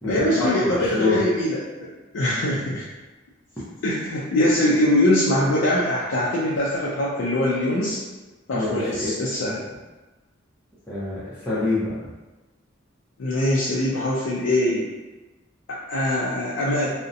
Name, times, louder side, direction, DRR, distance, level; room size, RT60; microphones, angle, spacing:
voice 1, 0.0-2.8 3.8-8.0 8.5-9.6 13.2-14.9 15.7-16.9, left 1 dB, 80° left, -6 dB, 0.4 m, -22 dB
voice 2, 0.8-1.2 8.5-9.1 9.4-9.6 10.9-11.9, left 2 dB, 10° left, -12 dB, 0.6 m, -26 dB
2.5 x 2.0 x 2.6 m, 1.2 s
head